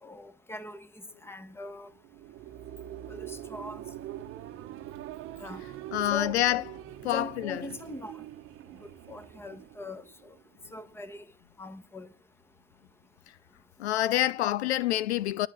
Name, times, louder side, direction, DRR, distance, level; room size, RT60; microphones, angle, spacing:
voice 1, 0.0-0.9 1.2-1.9 3.1-3.8 5.4-5.6 6.1-6.7 7.0-8.2 8.8-10.3 10.7-11.2 11.6-12.1, left 3 dB, 5° left, 1.4 m, -41 dB
sound 1, 1.9-10.6, right 13 dB, 40° right, 1.1 m, -43 dB
voice 2, 5.9-6.6 7.0-7.6 13.3-13.4 13.8-15.5, left 14 dB, 75° left, 0.5 m, -27 dB
11.5 x 7.5 x 7.4 m
hypercardioid pair, 95°, 33 cm